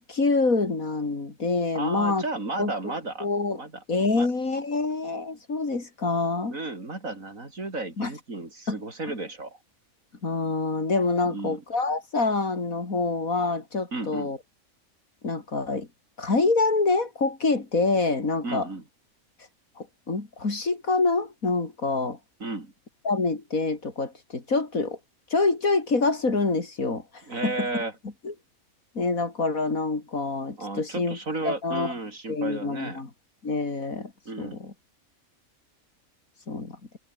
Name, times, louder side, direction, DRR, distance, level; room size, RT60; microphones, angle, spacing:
voice 1, 0.0-2.2 2.6-2.9 3.2-3.6 3.9-6.6 8.0-8.1 8.7-8.8 10.2-14.4 15.2-15.9 16.2-18.7 19.8-22.2 23.0-25.0 25.3-27.0 27.4-27.7 28.2-28.3 28.9-31.2 31.4-31.9 32.3-33.1 33.4-34.1 34.4-34.7 36.5-36.8, left 3 dB, 75° left, 4.0 m, -26 dB
voice 2, 1.7-3.3 3.5-3.8 4.1-4.3 6.5-9.6 11.3-11.6 13.9-14.3 18.4-18.8 22.4-22.7 27.3-27.9 30.6-33.0 34.2-34.7, right 2 dB, 70° right, 4.9 m, -33 dB
omnidirectional pair, 1.5 m